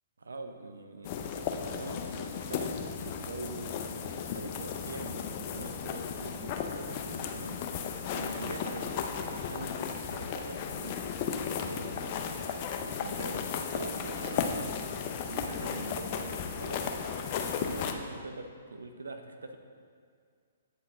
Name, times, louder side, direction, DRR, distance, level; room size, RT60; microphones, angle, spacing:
voice 1, 0.2-2.7 3.0-3.8 4.1-11.0 11.3-12.1 12.8-17.0 17.3-19.6, right 2 dB, 85° right, 6 dB, 0.5 m, -43 dB
sound 1, 1.0-17.9, left 7 dB, 40° left, 0.5 m, -35 dB
8.5 x 4.7 x 3.6 m, 2.1 s
hypercardioid pair, 130°, 0 cm